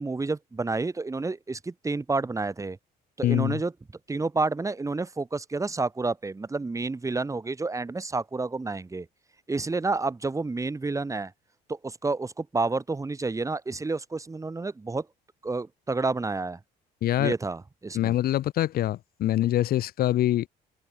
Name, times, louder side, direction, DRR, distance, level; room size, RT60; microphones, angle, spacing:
voice 1, 0.0-2.8 3.2-3.7 4.1-9.1 9.5-11.3 11.7-15.1 15.4-16.6 17.2-18.1, right 3 dB, 20° right, 5.8 m, -29 dB
voice 2, 3.2-3.6 17.0-17.3 17.9-20.5, left 13 dB, 65° left, 1.0 m, -24 dB
cardioid pair, 110°, 17 cm